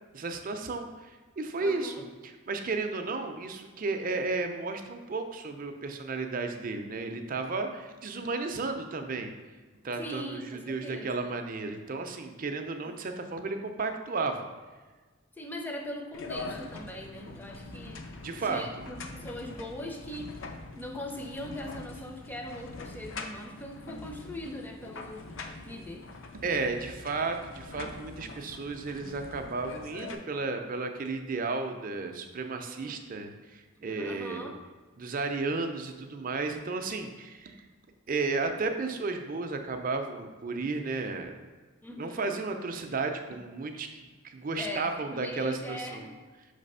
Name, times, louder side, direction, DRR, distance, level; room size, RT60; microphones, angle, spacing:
voice 1, 0.1-1.9 2.2-9.3 9.8-14.5 18.2-18.6 26.3-34.5 35.0-37.7 38.1-41.3 41.9-46.1, right 3 dB, 40° right, 6 dB, 0.5 m, -33 dB
voice 2, 1.6-2.0 10.0-11.3 12.8-13.0 15.4-18.0 18.5-20.5 20.8-25.2 25.6-26.1 32.5-33.0 33.9-34.6 41.8-42.3 44.6-46.1, left 1 dB, 10° left, 2 dB, 0.5 m, -41 dB
sound 1, 16.1-30.1, left 3 dB, 65° left, 0.6 m, -43 dB
5.6 x 3.3 x 5.4 m, 1.3 s
head